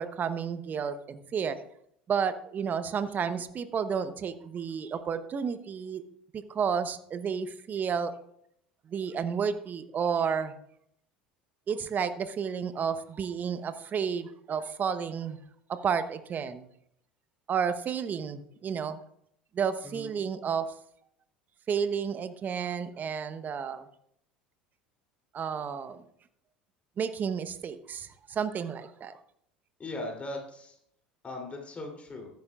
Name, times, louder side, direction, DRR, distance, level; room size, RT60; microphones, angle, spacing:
voice 1, 0.0-1.6 2.1-6.0 6.3-8.1 8.9-10.5 11.7-15.4 15.7-16.7 17.5-19.0 19.5-20.7 21.7-23.8 25.3-26.0 27.0-29.1, right 7 dB, 35° right, 11 dB, 0.9 m, -31 dB
voice 2, 29.8-30.8 31.2-32.3, left 2 dB, 25° left, 0 dB, 3.2 m, -39 dB
14.0 x 10.5 x 2.4 m, 0.70 s
hypercardioid pair, 75°, 5 cm